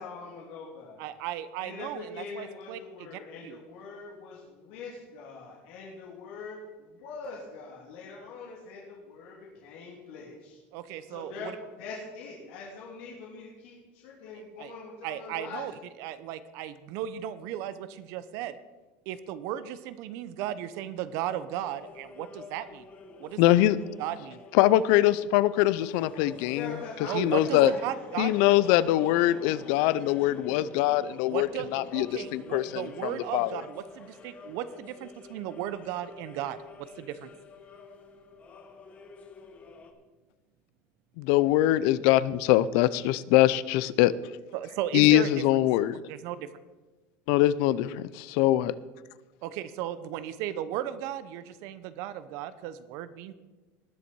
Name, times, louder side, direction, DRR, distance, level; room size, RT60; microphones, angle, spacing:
voice 1, 0.0-1.0 1.6-10.6 11.1-15.6 26.4-29.8, left 4 dB, 75° left, -4 dB, 3.2 m, -43 dB
voice 2, 1.0-3.1 3.4-3.6 10.7-11.5 14.6-14.7 15.0-15.7 16.0-18.5 19.1-22.8 23.2-23.6 24.0-24.4 27.0-28.4 31.3-37.3 44.5-45.3 46.1-46.5 49.4-53.3, right 11 dB, 55° right, 14 dB, 0.8 m, -35 dB
sound 1, 21.5-39.9, left 5 dB, 20° left, 1.0 m, -48 dB
voice 3, 23.4-23.8 24.5-26.7 27.1-27.7 28.2-33.6 41.2-44.1 44.9-46.0 47.3-48.7, left 15 dB, 60° left, 18 dB, 0.5 m, -23 dB
19.5 x 7.0 x 4.7 m, 1.2 s
cardioid pair, 175°, 6 cm